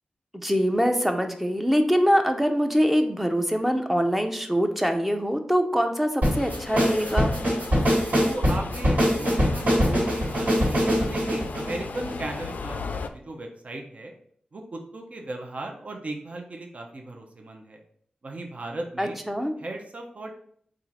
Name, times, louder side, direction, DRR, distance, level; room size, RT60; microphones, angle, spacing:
voice 1, 0.3-7.4 19.0-19.5, equal, 5° right, 5 dB, 0.5 m, -24 dB
sound 1, 6.2-12.5, equal, 75° right, 1.7 m, -23 dB
Subway metro underground, 6.3-13.1, left 4 dB, 85° left, 0.3 m, -37 dB
voice 2, 8.2-14.1 14.5-17.8 18.2-19.2 19.6-20.3, right 2 dB, 55° right, 2 dB, 0.6 m, -37 dB
4.3 x 2.5 x 3.9 m, 0.64 s
wide cardioid pair, 105°, 3 cm